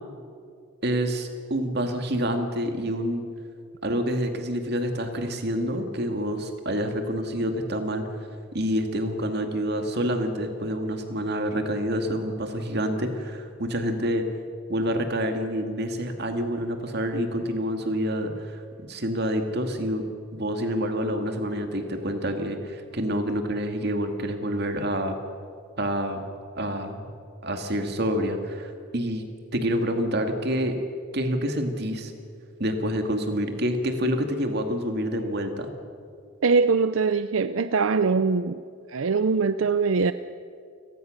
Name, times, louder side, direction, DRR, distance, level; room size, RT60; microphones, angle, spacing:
voice 1, 0.8-3.2 3.8-8.0 8.5-14.2 14.7-20.1 20.3-25.2 25.8-26.2 26.5-27.1 27.4-29.2 29.5-30.7 31.1-32.1 32.6-35.7, equal, 55° right, 5 dB, 2.3 m, -27 dB
voice 2, 36.4-38.6 38.9-40.1, right 4 dB, 85° right, 13 dB, 0.6 m, -22 dB
29.5 x 18.0 x 6.6 m, 2.3 s
head